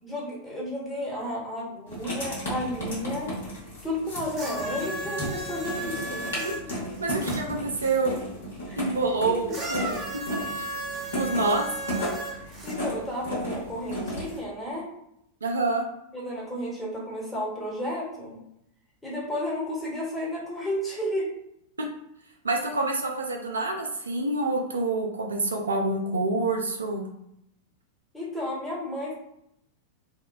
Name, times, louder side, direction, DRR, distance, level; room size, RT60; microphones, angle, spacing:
voice 1, 0.0-3.4 3.8-6.4 8.7-8.9 9.3-9.6 12.6-14.9 16.1-18.4 19.0-21.3 28.1-29.1, left 1 dB, 10° left, -6 dB, 1.1 m, -32 dB
Writing, 1.9-14.4, equal, 65° left, 1.1 m, -34 dB
sound 1, 4.3-7.4 9.5-12.8 13.7-13.8, right 2 dB, 30° right, 1.0 m, -35 dB
voice 2, 7.0-8.1 8.8-10.0 10.3-10.7 11.1-11.7 15.4-15.8 22.4-27.1, right 3 dB, 75° right, 1 dB, 0.3 m, -27 dB
2.7 x 2.2 x 2.3 m, 0.79 s
figure-of-eight pair, 90°, 0 cm